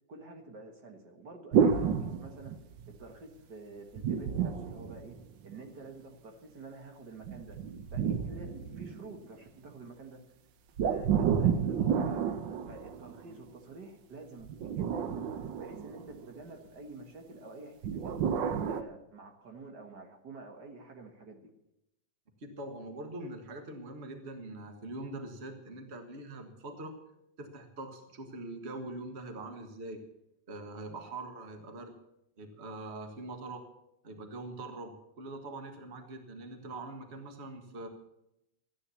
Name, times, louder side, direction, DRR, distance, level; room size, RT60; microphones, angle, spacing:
voice 1, 0.1-2.6 3.0-5.1 5.4-7.6 7.9-10.2 10.8-12.4 12.7-15.2 15.6-17.7 18.0-18.2 18.7-21.4, right 3 dB, 60° right, 3 dB, 2.2 m, -48 dB
sound 1, 1.5-3.0 4.0-5.6 7.2-9.3 10.8-13.3 14.4-16.3 17.8-18.8, right 7 dB, 80° right, 1.6 m, -30 dB
voice 2, 22.4-27.0 27.4-30.0 30.5-31.9 32.4-33.7 34.0-37.9, right 2 dB, 35° right, 5 dB, 1.8 m, -43 dB
14.0 x 10.0 x 7.0 m, 0.84 s
omnidirectional pair, 2.0 m